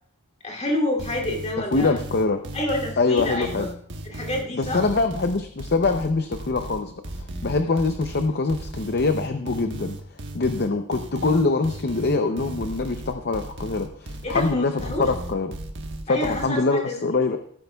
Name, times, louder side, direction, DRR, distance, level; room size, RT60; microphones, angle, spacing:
voice 1, 0.4-1.9 2.5-3.6 4.0-4.8 14.2-15.0 16.1-16.9, left 1 dB, 30° left, 0 dB, 2.8 m, -28 dB
sound 1, 1.0-16.5, right 1 dB, 55° right, 1.3 m, -36 dB
voice 2, 1.7-2.4 3.0-3.7 4.5-10.0 10.3-15.5 16.1-17.4, left 3 dB, 45° left, 7 dB, 0.6 m, -24 dB
15.5 x 13.0 x 2.3 m, 0.63 s
head